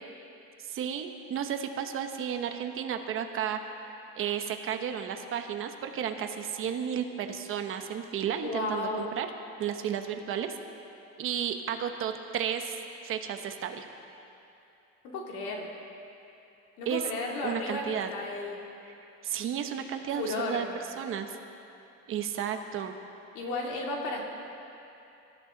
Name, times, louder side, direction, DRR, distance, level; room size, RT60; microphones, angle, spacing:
voice 1, 0.6-3.8 4.1-9.3 9.6-10.6 11.2-12.8 13.0-13.9 16.9-17.0 17.4-18.1 18.9-19.0 19.2-20.7 21.0-21.3 22.1-22.9, right 8 dB, 45° right, 6 dB, 1.0 m, -33 dB
voice 2, 8.4-9.1 15.0-15.7 16.8-17.8 18.1-18.6 20.1-20.7 23.3-24.2, left 2 dB, 80° left, -1 dB, 3.1 m, -33 dB
25.5 x 14.0 x 4.0 m, 2.8 s
cardioid pair, 170°, 30 cm